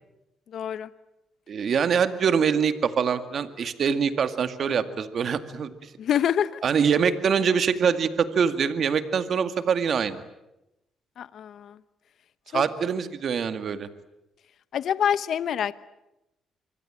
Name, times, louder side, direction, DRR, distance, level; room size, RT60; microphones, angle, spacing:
voice 1, 0.5-0.9 6.0-6.6 11.2-11.8 12.5-12.6 14.7-15.7, left 9 dB, 65° left, 15 dB, 1.0 m, -26 dB
voice 2, 1.5-5.7 6.6-10.2 12.5-13.9, right 6 dB, 55° right, 10 dB, 2.1 m, -24 dB
26.5 x 24.0 x 9.0 m, 0.92 s
cardioid pair, 90°, 0 cm